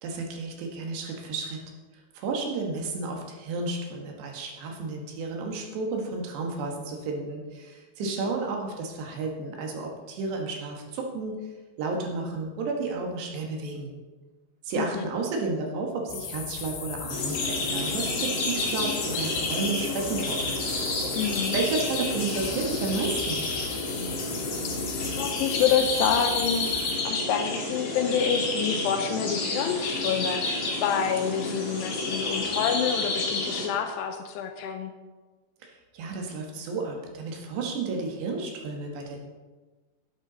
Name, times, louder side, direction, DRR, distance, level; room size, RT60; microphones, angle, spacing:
voice 1, 0.0-1.6 2.1-11.3 11.8-13.9 14.6-20.5 21.5-23.5 35.6-39.2, right 3 dB, 75° right, 1 dB, 3.4 m, -32 dB
voice 2, 8.0-8.3 14.8-15.1 21.1-21.6 25.2-34.9, left 8 dB, 80° left, 6 dB, 2.6 m, -28 dB
sound 1, 16.1-27.0, left 6 dB, 65° left, 3.0 m, -37 dB
sound 2, 17.1-33.7, left 2 dB, 45° left, 2.3 m, -30 dB
10.5 x 9.0 x 3.9 m, 1.3 s
omnidirectional pair, 5.1 m